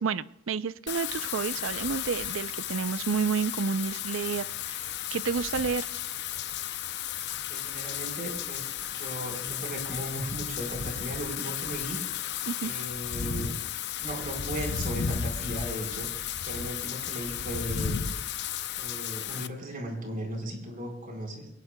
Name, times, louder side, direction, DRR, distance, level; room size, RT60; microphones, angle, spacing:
voice 1, 0.0-5.9 12.5-12.7, right 5 dB, 75° right, 15 dB, 0.5 m, -30 dB
Wind / Rain, 0.9-19.5, left 9 dB, 60° left, 0.6 m, -34 dB
voice 2, 7.5-12.0 12.6-13.6 14.0-18.1 18.8-21.5, right 1 dB, 45° right, 2 dB, 4.3 m, -37 dB
22.5 x 18.5 x 2.2 m, 0.89 s
head